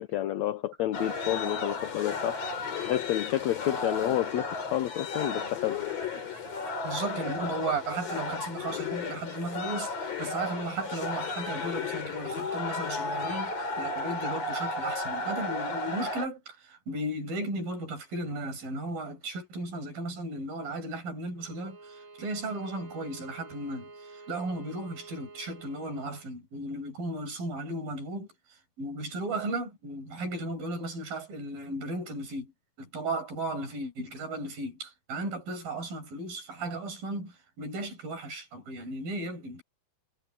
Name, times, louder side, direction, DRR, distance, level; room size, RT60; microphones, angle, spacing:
voice 1, 0.0-2.4 2.9-5.8, left 13 dB, 80° left, 1.6 m, -30 dB
sound 1, 0.9-16.3, left 3 dB, 45° left, 4.2 m, -34 dB
voice 2, 6.8-28.3 28.8-32.5 32.8-39.6, right 2 dB, 80° right, 8.0 m, -35 dB
Bowed string instrument, 21.3-26.3, right 3 dB, 40° right, 4.9 m, -49 dB
omnidirectional pair, 4.0 m